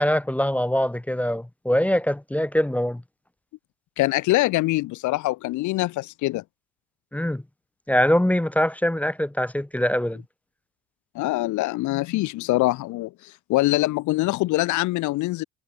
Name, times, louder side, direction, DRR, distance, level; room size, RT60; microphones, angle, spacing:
voice 1, 0.0-3.0 7.1-7.4 7.9-10.2, equal, 5° left, 0.9 m, -23 dB
voice 2, 4.0-6.4 11.2-15.4, left 18 dB, 70° left, 3.5 m, -24 dB
supercardioid pair, 80°, 31 cm